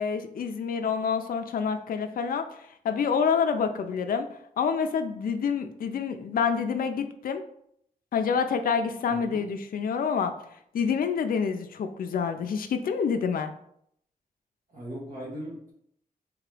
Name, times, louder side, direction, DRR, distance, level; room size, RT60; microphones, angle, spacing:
voice 1, 0.0-2.5 2.8-4.3 4.6-7.4 8.1-10.3 10.7-13.5, left 6 dB, 70° left, 7 dB, 0.4 m, -27 dB
voice 2, 9.0-9.4 14.7-15.7, equal, 60° right, -7 dB, 1.3 m, -39 dB
3.6 x 2.9 x 4.7 m, 0.70 s
wide cardioid pair, 160°, 15 cm